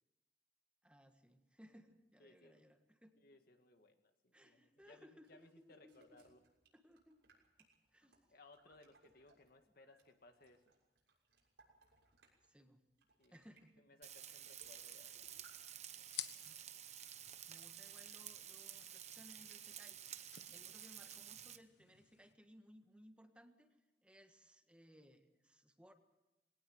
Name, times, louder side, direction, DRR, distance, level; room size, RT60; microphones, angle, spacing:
voice 1, 0.8-3.1 4.3-6.2 6.7-7.2 7.6-8.2 8.7-8.8 12.5-12.8 13.3-13.9 17.4-20.0 20.5-23.7 24.0-25.9, equal, 5° right, 6 dB, 1.5 m, -63 dB
voice 2, 2.2-2.6 3.2-6.4 8.3-10.6 13.2-13.4 13.8-15.4, left 2 dB, 55° left, 6 dB, 1.9 m, -64 dB
sound 1, 4.8-9.5 9.9-12.5 12.9-13.6 14.1-14.2 14.5-14.9 15.2-15.6, right 3 dB, 85° right, 6.7 m, -71 dB
Frying (food), 14.0-21.6, right 10 dB, 40° right, 1.0 m, -52 dB
sound 2, 14.7-22.3, left 12 dB, 85° left, 1.3 m, -55 dB
21.5 x 18.5 x 7.8 m, 1.0 s
head